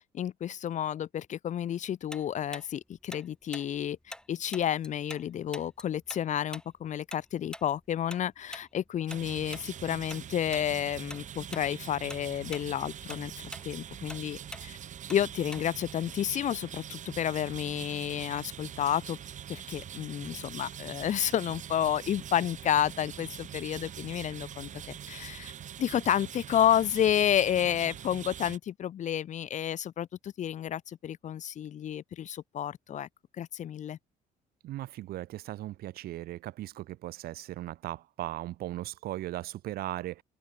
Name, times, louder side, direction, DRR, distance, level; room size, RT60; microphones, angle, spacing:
voice 1, 0.1-4.0 4.3-14.8 15.1-19.2 19.5-25.5 25.8-33.1 33.4-34.0, left 10 dB, 45° left, 0.7 m, -30 dB
Tick-tock, 2.1-5.3 5.5-10.2 10.5-10.7 11.1-11.7 12.0-15.9, left 1 dB, 5° left, 5.8 m, -45 dB
sound 1, 9.1-28.6, right 9 dB, 45° right, 1.0 m, -43 dB
voice 2, 34.6-40.2, right 15 dB, 65° right, 0.6 m, -38 dB
open air
cardioid pair, 110°, 17 cm